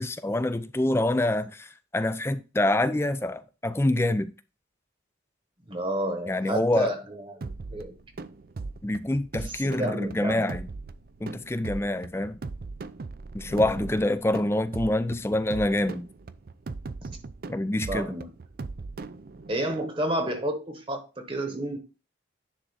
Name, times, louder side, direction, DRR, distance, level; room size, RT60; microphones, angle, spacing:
voice 1, 0.0-4.3 6.3-6.9 8.8-10.7 11.2-12.4 13.3-16.1 17.5-18.1, left 1 dB, 15° left, 0.3 m, -26 dB
voice 2, 5.7-7.9 9.4-10.5 13.4-13.8 17.9-18.3 19.5-21.8, right 1 dB, 30° right, 1.1 m, -31 dB
sound 1, 7.4-19.7, right 3 dB, 50° right, 0.4 m, -39 dB
10.0 x 3.7 x 4.0 m
head